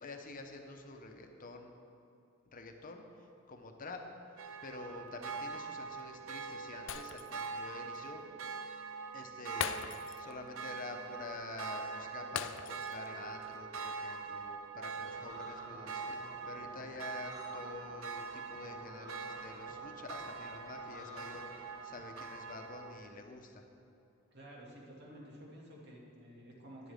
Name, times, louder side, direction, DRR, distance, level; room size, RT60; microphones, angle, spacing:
voice 1, 0.0-1.7 2.5-4.0 4.3-8.2 9.1-23.7, left 3 dB, 45° left, 4 dB, 0.9 m, -48 dB
sound 1, 4.4-23.1, right 5 dB, 85° right, 0.7 m, -44 dB
Shatter, 6.9-7.6 7.9-8.1 9.6-10.4 10.7-10.8 12.4-13.1 13.4-13.6, left 8 dB, 70° left, 0.4 m, -40 dB
sound 2, 15.0-22.2, equal, 20° right, 1.2 m, -53 dB
voice 2, 24.3-26.9, equal, 55° right, -3 dB, 2.1 m, -52 dB
11.5 x 10.0 x 3.5 m, 2.8 s
head